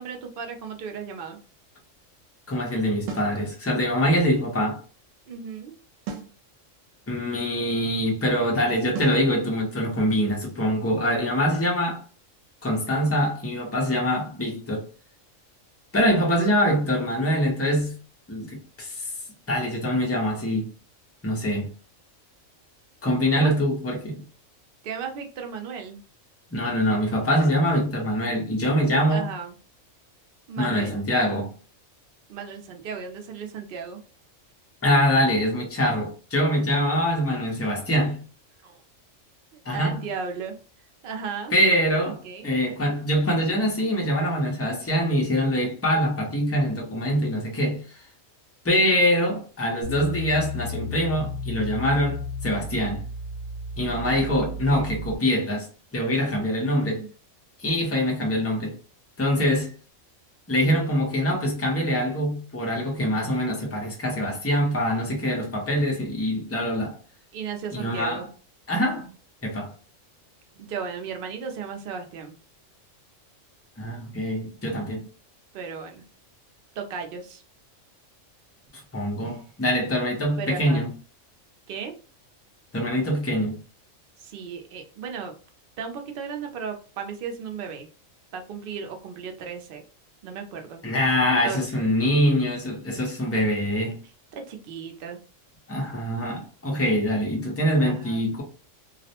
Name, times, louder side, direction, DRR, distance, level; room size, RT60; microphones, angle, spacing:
voice 1, 0.0-1.4 5.3-5.7 23.0-23.5 24.8-26.0 29.1-29.6 30.5-31.0 32.3-34.0 38.6-38.8 39.7-40.6 41.0-41.5 42.2-42.5 54.4-54.9 57.0-57.1 65.0-65.1 67.3-68.3 70.6-72.4 75.5-76.0 76.8-77.4 79.2-79.4 80.4-80.9 81.7-81.9 84.2-85.3 85.8-87.9 88.3-89.8 90.2-90.8 91.3-91.9 94.3-95.2 97.8-98.2, right 6 dB, 60° right, 0.6 m, -35 dB
voice 2, 2.5-4.8 7.1-12.0 12.6-14.8 15.9-17.9 18.3-19.1 19.5-20.7 21.2-21.7 23.0-24.2 26.5-29.3 30.6-31.5 34.8-38.2 39.7-40.0 41.5-47.8 48.6-53.0 53.8-55.7 55.9-57.0 57.6-58.8 59.2-59.7 60.5-67.0 67.7-68.2 68.7-69.1 69.4-69.7 73.8-75.0 78.9-80.9 82.7-83.6 90.8-94.0 95.7-98.4, equal, 20° left, 0.4 m, -24 dB
sound 1, 3.1-3.4 6.1-6.4 9.0-9.3, right 6 dB, 80° right, 1.0 m, -34 dB
sound 2, 49.8-55.2, left 2 dB, 65° left, 0.9 m, -34 dB
2.4 x 2.0 x 2.8 m
omnidirectional pair, 1.3 m